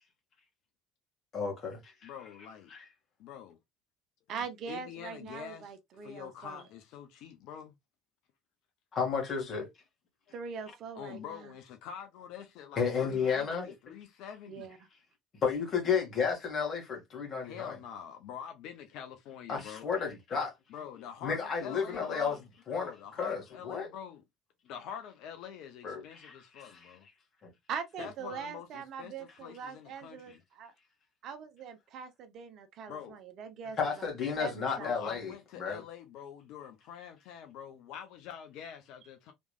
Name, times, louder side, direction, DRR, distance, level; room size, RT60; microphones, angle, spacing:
voice 1, 1.3-1.8 8.9-9.7 12.8-13.7 15.4-17.8 19.5-20.5 21.2-22.4 22.7-22.9 23.2-23.9 25.8-26.9 27.4-27.5 33.8-35.3 35.6-35.8, left 6 dB, 40° left, 1.7 m, -32 dB
voice 2, 2.0-2.7 3.2-3.6 4.7-5.7 6.0-7.7 11.0-14.7 17.4-19.9 20.7-22.4 22.7-24.2 24.6-27.1 28.0-30.4 32.9-33.2 34.8-39.3, left 8 dB, 60° left, 0.6 m, -46 dB
voice 3, 4.3-6.6 10.3-11.5 14.5-14.8 27.7-30.7 31.2-34.1 34.4-34.9, right 6 dB, 50° right, 0.7 m, -42 dB
3.4 x 3.1 x 2.4 m
figure-of-eight pair, 60°, 0 cm